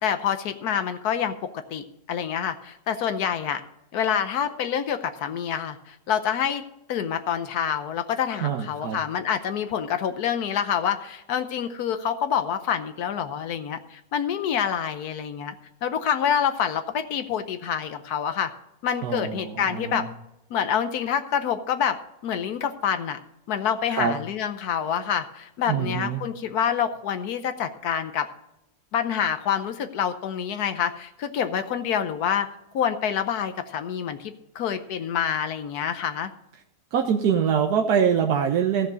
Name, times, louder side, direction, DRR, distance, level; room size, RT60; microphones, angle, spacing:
voice 1, 0.0-3.6 3.9-6.6 6.9-15.5 15.8-18.5 18.8-20.0 20.5-22.0 22.2-23.2 23.5-28.3 28.9-32.5 32.7-36.3, left 8 dB, 85° left, 9 dB, 1.3 m, -27 dB
voice 2, 8.4-9.0 19.0-20.1 23.9-24.2 25.7-26.2 36.9-38.9, right 7 dB, 85° right, 3 dB, 1.4 m, -24 dB
14.5 x 6.5 x 6.2 m, 0.87 s
omnidirectional pair, 1.6 m